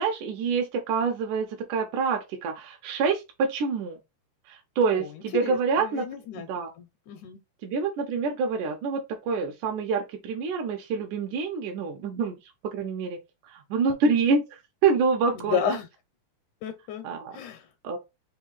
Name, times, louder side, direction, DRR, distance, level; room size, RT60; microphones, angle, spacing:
voice 1, 0.0-4.0 4.5-6.1 6.4-6.7 7.6-12.4 12.6-15.8 17.0-17.4 17.8-18.0, right 5 dB, 75° right, 2.2 m, -27 dB
voice 2, 5.4-6.5 6.8-7.4 15.3-15.9 16.6-17.1 17.3-17.7, left 8 dB, 80° left, 2.0 m, -32 dB
5.4 x 2.2 x 4.1 m
omnidirectional pair, 3.7 m